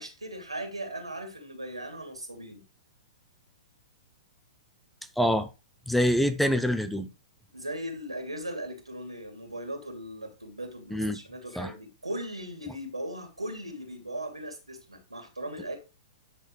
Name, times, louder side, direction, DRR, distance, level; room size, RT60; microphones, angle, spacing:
voice 1, 0.0-2.6 7.5-15.8, right 1 dB, 80° right, 2.6 m, -38 dB
voice 2, 5.2-5.5 5.9-7.1 10.9-11.2 11.5-11.7, equal, ahead, 0.6 m, -25 dB
10.5 x 6.3 x 3.2 m
figure-of-eight pair, 110°, 3 cm